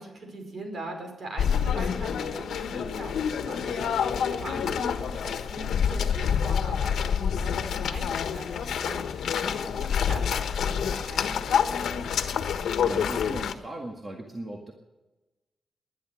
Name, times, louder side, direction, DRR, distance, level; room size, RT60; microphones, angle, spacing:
voice 1, 0.0-11.4, right 2 dB, 50° right, 4 dB, 5.3 m, -41 dB
sound 1, 1.4-13.5, left 7 dB, 90° left, 1.3 m, -27 dB
voice 2, 12.8-14.7, right 1 dB, 25° right, 1 dB, 1.9 m, -38 dB
20.5 x 11.0 x 6.3 m, 1.1 s
wide cardioid pair, 125°, 0 cm